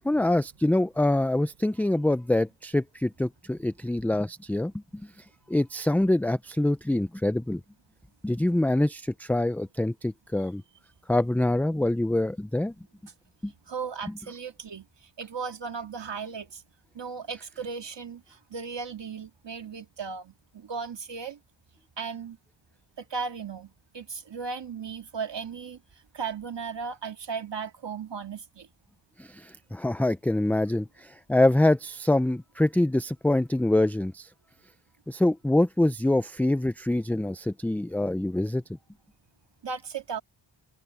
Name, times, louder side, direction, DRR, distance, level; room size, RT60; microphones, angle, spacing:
voice 1, 0.0-5.0 5.5-7.6 8.2-10.6 11.1-12.7 13.4-13.5 29.2-34.3 35.1-38.6, left 1 dB, 5° left, 0.4 m, -25 dB
voice 2, 13.7-14.9 15.2-16.6 17.0-21.4 22.0-22.4 23.0-25.8 26.1-28.7 39.6-40.2, right 5 dB, 65° right, 2.1 m, -36 dB
open air
wide cardioid pair, 90°, 47 cm